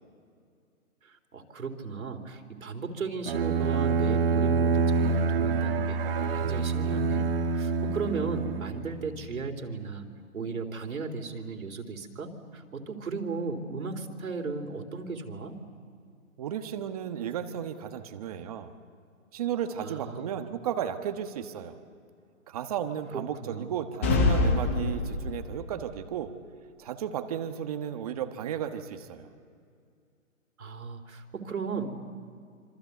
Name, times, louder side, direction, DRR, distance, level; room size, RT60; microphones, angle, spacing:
voice 1, 1.0-10.1 10.3-15.6 19.8-20.3 23.1-23.7 30.6-31.9, right 4 dB, 80° right, 4 dB, 3.7 m, -36 dB
Bowed string instrument, 3.3-9.1, right 4 dB, 40° right, 1.9 m, -26 dB
voice 2, 16.4-18.7 19.3-21.7 22.5-26.3 26.8-29.3, right 9 dB, 25° right, 8 dB, 1.2 m, -34 dB
sound 1, 24.0-25.7, left 3 dB, 10° left, 0.7 m, -25 dB
26.5 x 26.5 x 8.2 m, 2.3 s
hypercardioid pair, 160°, 42 cm